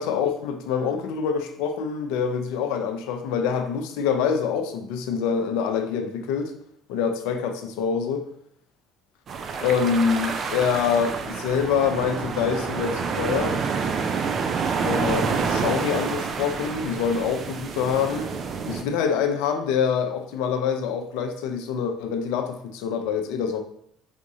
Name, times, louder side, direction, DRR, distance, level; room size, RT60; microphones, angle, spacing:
voice 1, 0.0-6.5 6.9-8.3 9.6-13.6 14.8-18.3 18.7-23.6, left 6 dB, 70° left, 6 dB, 0.5 m, -25 dB
sound 1, 9.3-18.8, right 5 dB, 45° right, 0.4 m, -28 dB
5.0 x 3.5 x 2.7 m, 0.68 s
hypercardioid pair, 55°, 0 cm